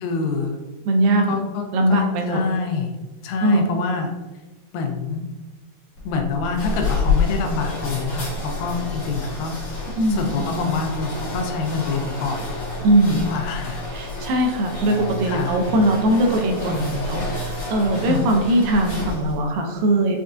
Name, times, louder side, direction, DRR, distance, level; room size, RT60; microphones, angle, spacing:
voice 1, 0.0-0.6 1.3-2.9 3.2-4.1 4.7-5.2 6.1-9.6 10.1-12.5 13.1-13.8 14.1-14.4 15.2-15.6 17.9-18.3, left 4 dB, 85° left, 4 dB, 2.2 m, -26 dB
voice 2, 0.9-1.3 1.7-2.4 3.4-3.6 10.0-10.4 12.8-13.3 13.9-20.2, right 1 dB, 85° right, 2 dB, 2.2 m, -20 dB
sound 1, 6.0-19.5, left 3 dB, 65° left, 1.5 m, -29 dB
6.3 x 2.3 x 2.5 m, 1.1 s
omnidirectional pair, 4.1 m